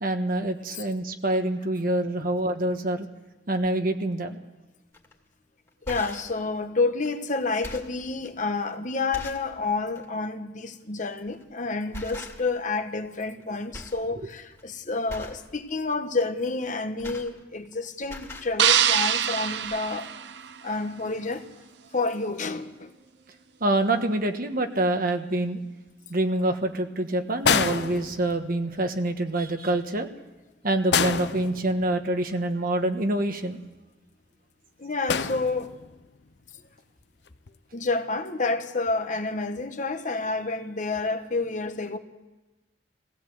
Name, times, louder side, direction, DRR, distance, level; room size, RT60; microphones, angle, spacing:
voice 1, 0.0-3.1 3.5-4.4 23.6-25.6 26.1-30.1 30.6-33.6, right 1 dB, 55° right, 1.4 m, -26 dB
sound 1, 4.9-5.1 5.7-6.4 7.0-7.1 7.5-8.0 8.6-8.7 9.1-9.5 9.9-10.1 11.3-11.5 11.9-12.7 13.0-13.4 13.7-14.0 14.4-14.6 15.1-15.5 16.6-17.7 18.0-18.5 19.3-19.4 19.6-19.8, left 2 dB, 15° left, 2.3 m, -41 dB
voice 2, 5.9-20.1 20.6-21.5 21.9-22.9 34.8-35.7 37.7-42.0, left 3 dB, 45° left, 1.2 m, -29 dB
sound 2, 18.6-20.9, right 9 dB, 75° right, 0.7 m, -24 dB
sound 3, 27.4-28.7 30.9-32.1 35.1-36.0 37.3-37.5, left 6 dB, 70° left, 0.7 m, -27 dB
20.0 x 16.5 x 7.9 m
head